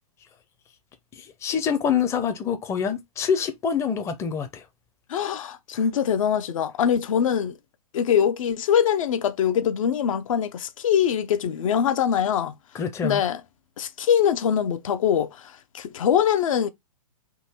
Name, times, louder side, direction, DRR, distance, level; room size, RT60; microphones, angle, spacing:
voice 1, 1.2-4.6 12.7-13.2, left 7 dB, 15° left, 0.6 m, -26 dB
voice 2, 5.1-7.6 7.9-12.5 13.0-13.4 13.8-16.7, left 8 dB, 60° left, 0.7 m, -23 dB
3.9 x 2.8 x 4.3 m
hypercardioid pair, 125°, 19 cm